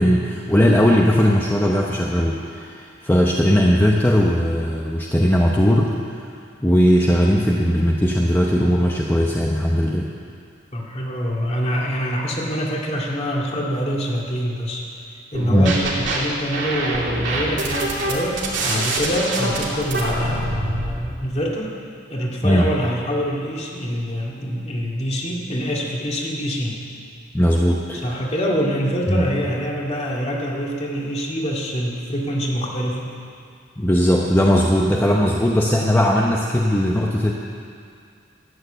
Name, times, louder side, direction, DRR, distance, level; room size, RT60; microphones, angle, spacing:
voice 1, 0.0-5.9 6.2-6.3 6.6-10.1 15.5-15.8 22.4-22.7 27.3-28.0 29.1-29.2 33.8-37.3, equal, 10° left, -2 dB, 0.8 m, -18 dB
voice 2, 10.7-15.0 15.3-21.7 22.1-26.8 28.0-33.2, equal, 35° left, -2 dB, 2.1 m, -25 dB
sound 1, 15.3-16.2 16.5-20.9, right 2 dB, 70° right, 2.8 m, -25 dB
13.0 x 9.4 x 8.0 m, 2.3 s
head